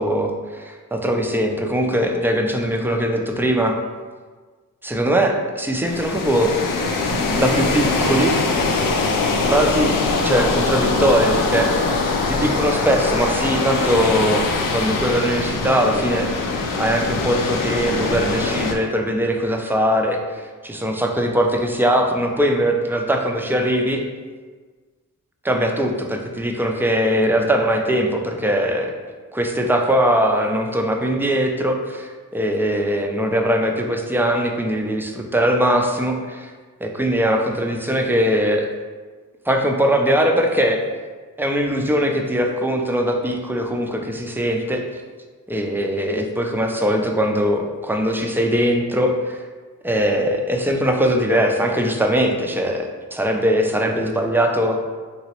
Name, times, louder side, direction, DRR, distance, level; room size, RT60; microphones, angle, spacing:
voice 1, 0.0-3.7 4.8-6.5 7.1-8.4 9.5-11.8 12.3-20.2 20.6-24.0 25.4-28.9 29.3-36.5 36.8-38.7 39.5-40.8 41.4-44.8 45.5-49.4 49.8-54.8, equal, 5° right, 2 dB, 0.4 m, -21 dB
sound 1, 5.8-18.7, left 3 dB, 70° left, 0.5 m, -22 dB
3.0 x 2.9 x 2.9 m, 1.4 s
cardioid pair, 60°, 34 cm